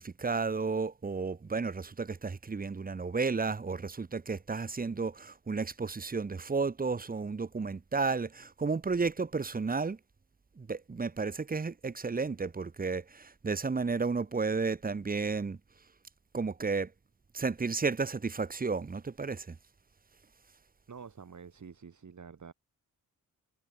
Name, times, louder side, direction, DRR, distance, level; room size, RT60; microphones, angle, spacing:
voice 1, 0.0-10.0 10.6-15.6 16.3-16.9 17.3-19.5, right 4 dB, 25° right, 0.9 m, -32 dB
voice 2, 20.9-22.5, right 6 dB, 55° right, 5.6 m, -48 dB
cardioid pair, 60°, 36 cm